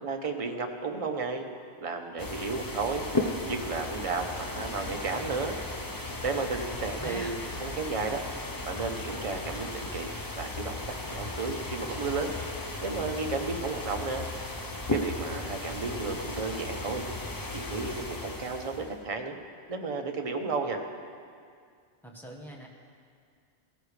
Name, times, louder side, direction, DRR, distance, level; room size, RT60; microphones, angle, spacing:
voice 1, 0.0-1.5 1.8-3.1 3.5-5.6 6.2-8.2 8.7-10.1 10.4-12.3 12.8-14.2 14.9-17.0 17.5-19.4 19.7-20.8, right 4 dB, 35° right, 4 dB, 0.9 m, -33 dB
sound 1, 2.2-19.0, left 2 dB, 20° left, 0.7 m, -36 dB
voice 2, 6.7-7.4 22.0-22.7, equal, ahead, -2 dB, 1.3 m, -43 dB
16.0 x 13.5 x 3.3 m, 2.2 s
omnidirectional pair, 1.1 m